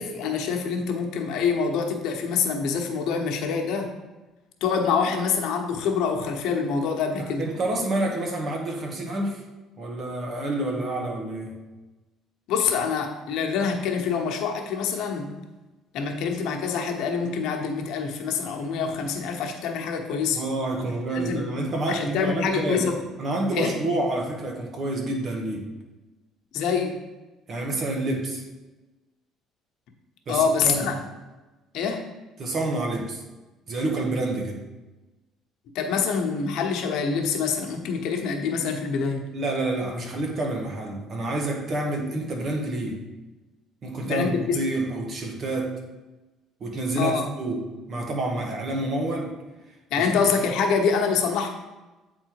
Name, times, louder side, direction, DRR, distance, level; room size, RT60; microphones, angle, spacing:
voice 1, 0.0-3.9 4.6-7.5 12.5-15.4 15.9-20.4 21.1-21.4 21.9-23.0 23.5-23.7 26.5-27.0 30.3-31.0 31.7-32.1 35.7-39.3 44.0-44.6 47.0-47.2 49.9-51.5, left 6 dB, 70° left, 2 dB, 1.1 m, -25 dB
voice 2, 7.2-9.4 9.8-11.6 20.3-22.9 23.2-25.7 27.5-28.4 30.3-30.9 32.4-33.2 33.7-34.6 39.3-43.0 43.8-45.7 46.6-49.4 50.0-50.1, right 2 dB, 40° right, 1 dB, 1.6 m, -28 dB
8.6 x 4.1 x 4.7 m, 1.1 s
cardioid pair, 125°, 0 cm